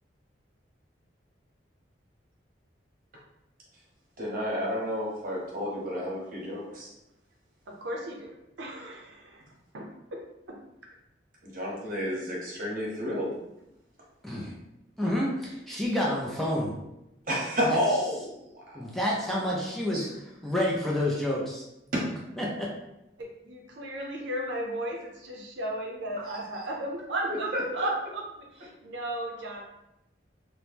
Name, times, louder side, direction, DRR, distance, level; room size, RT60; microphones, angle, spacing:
voice 1, 4.2-6.9 11.4-13.4 17.2-18.9 19.9-20.1 21.9-22.1 26.3-26.6 27.5-27.6, equal, 50° right, -4 dB, 0.9 m, -31 dB
voice 2, 7.7-8.3 8.6-9.4 9.7-10.2 10.5-10.6 23.2-28.2 28.6-29.6, right 1 dB, 75° right, 0 dB, 0.5 m, -35 dB
voice 3, 14.2-14.5 15.0-16.7 17.6-17.8 18.7-20.1 20.4-21.6 22.4-22.7, left 1 dB, ahead, -4 dB, 0.4 m, -29 dB
2.8 x 2.0 x 3.2 m, 0.88 s
head